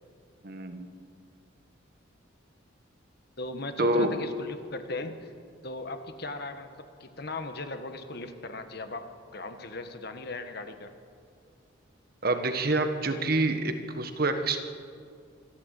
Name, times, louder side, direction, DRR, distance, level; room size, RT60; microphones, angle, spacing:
voice 1, 0.4-0.9 3.8-4.3 12.2-14.6, right 2 dB, 50° right, 7 dB, 1.5 m, -27 dB
voice 2, 3.4-5.3 5.6-10.9, left 2 dB, 50° left, 8 dB, 1.6 m, -38 dB
24.5 x 14.5 x 8.4 m, 2.3 s
head